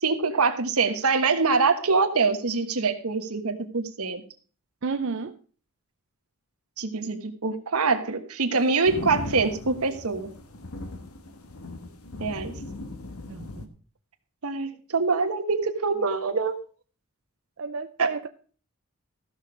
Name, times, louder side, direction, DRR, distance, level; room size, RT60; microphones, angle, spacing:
voice 1, 0.0-4.2 6.8-10.3 12.2-12.5 14.4-16.6 18.0-18.1, right 4 dB, 85° right, 1.3 m, -24 dB
voice 2, 4.8-5.4 13.3-13.7 17.6-18.3, right 5 dB, 55° right, 0.5 m, -31 dB
sound 1, 8.6-13.7, left 2 dB, 80° left, 1.3 m, -38 dB
14.5 x 6.4 x 4.9 m
head